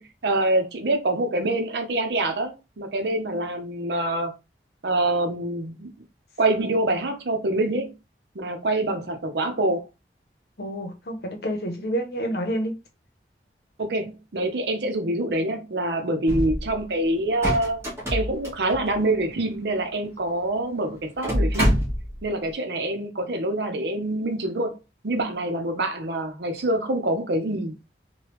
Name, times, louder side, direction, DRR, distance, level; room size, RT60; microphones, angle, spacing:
voice 1, 0.0-4.3 4.8-5.9 6.4-7.9 8.3-9.8 13.8-17.8 18.1-21.8 22.2-24.7 25.0-27.8, right 1 dB, 75° right, 0.7 m, -25 dB
voice 2, 10.6-12.7, right 1 dB, 65° left, 0.8 m, -28 dB
sound 1, 16.3-16.9 17.2-19.3 20.2-20.3 20.5-20.6 21.1-22.3, equal, 15° right, 1.2 m, -26 dB
3.3 x 2.2 x 3.0 m
head